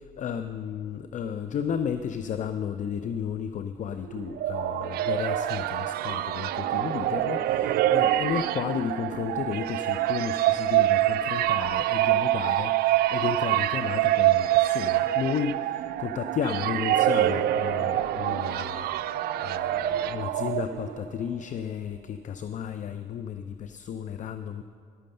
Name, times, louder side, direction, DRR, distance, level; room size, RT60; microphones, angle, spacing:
voice 1, 0.2-24.6, left 7 dB, 50° left, 10 dB, 0.5 m, -33 dB
sound 1, 4.1-21.1, right 14 dB, 70° right, 0.4 m, -26 dB
11.0 x 9.3 x 6.6 m, 2.2 s
cardioid pair, 85°, 16 cm